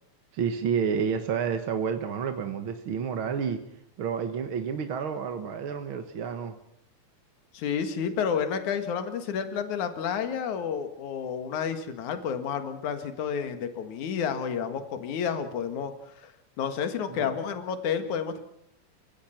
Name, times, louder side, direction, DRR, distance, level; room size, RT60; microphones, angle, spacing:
voice 1, 0.3-3.6 4.0-6.6 17.1-17.3, right 7 dB, 50° right, 7 dB, 1.8 m, -30 dB
voice 2, 7.5-18.4, left 7 dB, 75° left, 8 dB, 3.2 m, -30 dB
29.5 x 17.0 x 5.9 m, 0.76 s
omnidirectional pair, 3.5 m